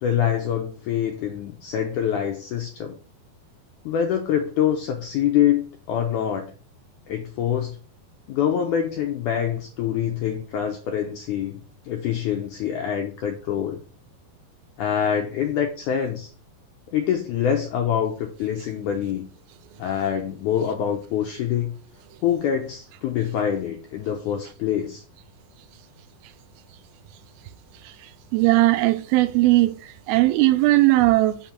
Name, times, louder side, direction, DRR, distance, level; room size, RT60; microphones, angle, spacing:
voice 1, 0.0-3.0 3.8-6.5 7.1-7.8 8.3-11.6 11.9-13.8 14.8-16.3 16.9-19.3 19.8-21.8 22.2-25.0, left 9 dB, 90° left, 1.8 m, -25 dB
voice 2, 28.3-29.8 30.1-31.4, right 18 dB, 85° right, 2.4 m, -18 dB
6.0 x 3.7 x 5.7 m
omnidirectional pair, 4.3 m